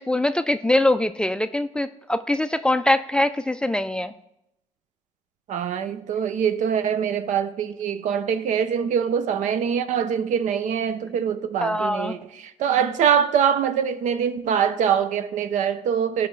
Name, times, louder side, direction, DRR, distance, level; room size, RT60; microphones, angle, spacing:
voice 1, 0.0-4.1 11.6-12.2, left 1 dB, 5° left, 0.3 m, -23 dB
voice 2, 5.5-16.3, right 8 dB, 75° right, 0.6 m, -23 dB
14.0 x 5.6 x 3.2 m
cardioid pair, 115°, 13 cm